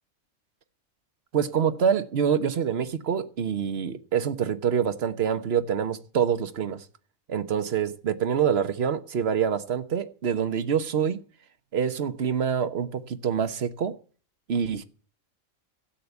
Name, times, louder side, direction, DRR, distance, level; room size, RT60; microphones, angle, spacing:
voice 1, 1.3-6.8 7.3-11.2 11.7-14.0 14.5-14.8, right 7 dB, 50° right, 1.2 m, -26 dB
13.0 x 8.4 x 8.2 m
omnidirectional pair, 1.5 m